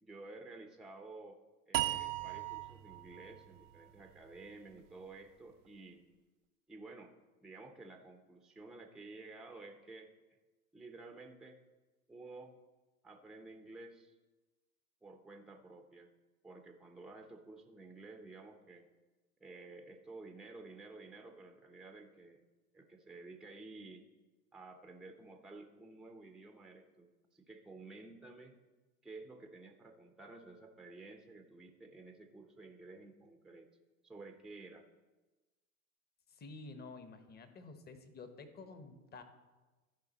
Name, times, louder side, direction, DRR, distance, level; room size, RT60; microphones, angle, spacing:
voice 1, 0.0-6.0 6.7-7.1 7.4-10.1 10.7-11.6 12.1-12.5 13.0-14.1 15.0-16.1 16.4-18.9 19.4-22.4 22.7-24.0 24.5-28.6 29.0-33.7 34.0-34.8, right 3 dB, ahead, 4 dB, 0.6 m, -52 dB
sound 1, 1.7-4.9, right 16 dB, 60° right, 0.6 m, -39 dB
voice 2, 36.3-39.2, left 3 dB, 20° left, 9 dB, 1.0 m, -51 dB
14.0 x 4.7 x 4.0 m, 1.2 s
hypercardioid pair, 100°, 43 cm